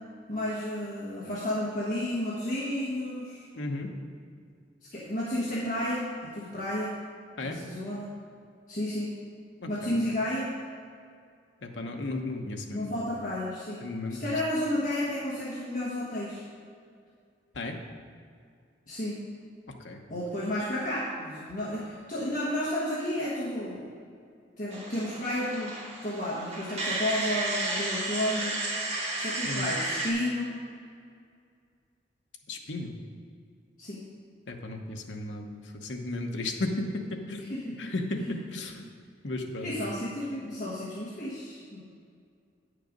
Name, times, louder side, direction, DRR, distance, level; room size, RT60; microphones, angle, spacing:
voice 1, 0.3-3.5 4.9-7.0 7.4-8.1 8.7-9.1 9.7-10.5 12.7-13.8 14.2-16.4 18.9-19.2 20.1-23.9 24.6-25.7 26.0-28.6 29.2-30.5 33.8-34.0 37.4-38.4 39.6-41.8, left 1 dB, 45° left, -7 dB, 1.4 m, -32 dB
voice 2, 3.5-3.9 7.4-7.6 9.6-9.9 11.6-13.1 13.8-14.2 17.5-17.8 19.8-20.0 29.4-29.7 32.5-32.9 34.5-38.7 39.2-39.7, left 2 dB, 75° left, 3 dB, 1.0 m, -34 dB
sound 1, 24.7-30.1, right 2 dB, 35° right, 1.7 m, -33 dB
9.2 x 6.6 x 5.2 m, 2.2 s
head